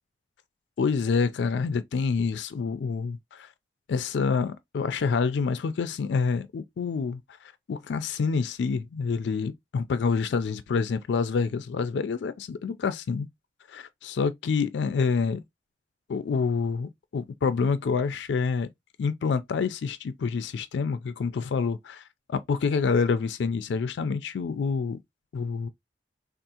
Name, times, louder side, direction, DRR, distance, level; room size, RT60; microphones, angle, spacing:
voice 1, 0.8-3.5 3.9-7.2 7.7-13.3 13.7-15.4 16.1-18.7 19.0-22.0 22.3-25.0 25.3-25.7, left 5 dB, 80° left, 0.4 m, -27 dB
3.5 x 2.4 x 2.7 m
head